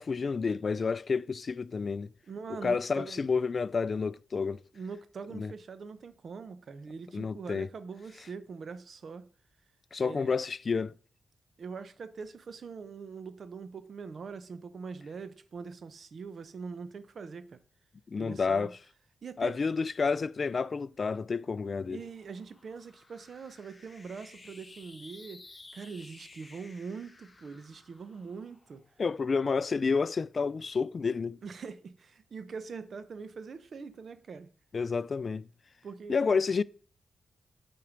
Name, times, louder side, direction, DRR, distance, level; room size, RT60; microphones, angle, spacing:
voice 1, 0.0-2.1 2.6-4.6 5.3-5.5 7.1-7.7 9.9-10.9 18.1-18.7 19.4-22.0 29.0-31.4 34.7-35.4 36.1-36.6, left 5 dB, 50° left, 0.3 m, -30 dB
voice 2, 2.3-3.3 4.7-9.3 10.0-10.4 11.6-17.6 18.2-18.7 19.2-19.5 21.9-25.4 25.7-28.8 31.4-34.5 35.8-36.3, right 5 dB, 60° right, 0.8 m, -43 dB
sound 1, 21.3-29.7, left 3 dB, 25° left, 1.4 m, -55 dB
8.9 x 4.4 x 5.1 m
cardioid pair, 75°, 0 cm